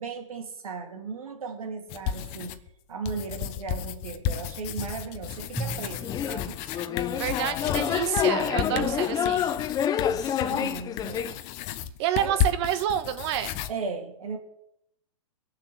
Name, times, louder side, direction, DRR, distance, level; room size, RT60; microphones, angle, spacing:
voice 1, 0.0-2.6 2.9-6.6 8.7-9.0 10.0-11.4 12.1-12.4 13.7-14.4, right 4 dB, 85° right, 3 dB, 3.3 m, -36 dB
sound 1, 1.9-2.7 3.1-13.7, left 10 dB, 40° left, 1.0 m, -33 dB
Drum, 5.6-8.0, right 2 dB, ahead, 1.2 m, -39 dB
sound 2, 6.0-11.3, left 9 dB, 20° left, 0.7 m, -28 dB
voice 2, 7.1-9.5 12.0-13.6, right 11 dB, 50° right, 10 dB, 1.4 m, -28 dB
21.0 x 7.5 x 6.5 m, 0.78 s
hypercardioid pair, 130°, 18 cm